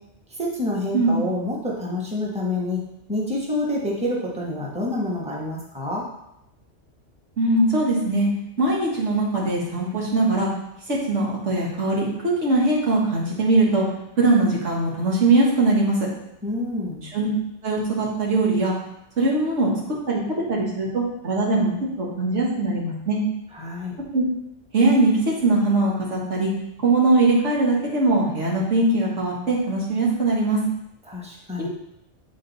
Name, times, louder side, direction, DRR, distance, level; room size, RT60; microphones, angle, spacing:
voice 1, 0.4-2.8 3.1-6.1 16.4-17.0 23.5-23.9 31.1-31.7, left 1 dB, 5° right, -4 dB, 1.2 m, -27 dB
voice 2, 7.4-8.3 8.6-10.5 10.9-13.9 14.2-16.0 17.1-17.3 17.6-18.7 19.2-19.7 20.1-21.7 22.0-23.2 24.1-24.2 24.7-26.5 26.8-30.6 31.6-31.7, right 2 dB, 85° right, -4 dB, 2.0 m, -21 dB
8.6 x 3.9 x 4.1 m, 0.81 s
omnidirectional pair, 1.2 m